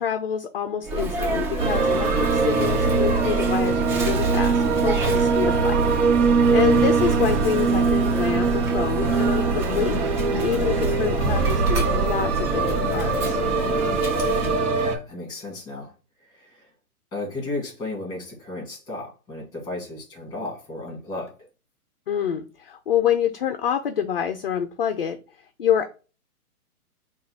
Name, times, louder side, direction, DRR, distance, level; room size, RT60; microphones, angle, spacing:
voice 1, 0.0-5.8 6.5-10.0 10.4-13.4 22.1-25.2 25.6-25.9, left 8 dB, 40° left, 7 dB, 0.4 m, -26 dB
Sneeze, 0.8-14.6, right 2 dB, 35° right, 1.5 m, -29 dB
sound 1, 1.6-15.0, right 4 dB, 50° right, 1.0 m, -22 dB
voice 2, 14.7-15.9 16.2-16.7 17.1-21.4, left 2 dB, 10° left, -1 dB, 1.7 m, -34 dB
3.9 x 2.4 x 4.3 m, 0.33 s
hypercardioid pair, 145°, 45 cm